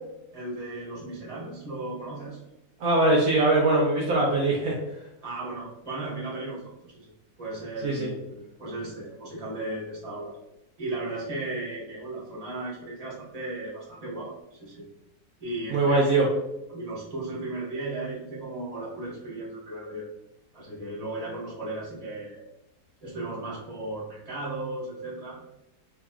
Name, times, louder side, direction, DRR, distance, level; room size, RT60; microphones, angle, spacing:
voice 1, 0.3-2.4 5.2-7.1 7.4-10.4 10.8-14.8 15.4-16.2 16.7-20.0 20.5-22.4 23.0-25.4, right 2 dB, 25° right, -6 dB, 1.4 m, -36 dB
voice 2, 2.8-4.8 7.8-8.1 15.7-16.3, right 2 dB, 65° right, -3 dB, 1.1 m, -22 dB
4.6 x 2.9 x 2.3 m, 0.91 s
omnidirectional pair, 1.8 m